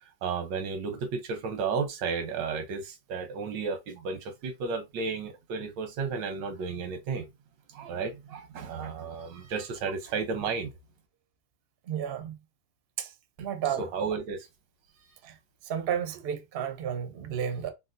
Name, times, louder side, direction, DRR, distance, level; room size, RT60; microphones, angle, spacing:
voice 1, 0.2-7.3 7.7-10.8 13.8-14.5, right 5 dB, 90° right, 1.4 m, -33 dB
voice 2, 11.9-12.4 13.0-13.1 13.4-13.9 15.2-15.3 15.6-17.7, right 9 dB, 60° right, 0.6 m, -32 dB
4.1 x 2.2 x 2.5 m
omnidirectional pair, 1.9 m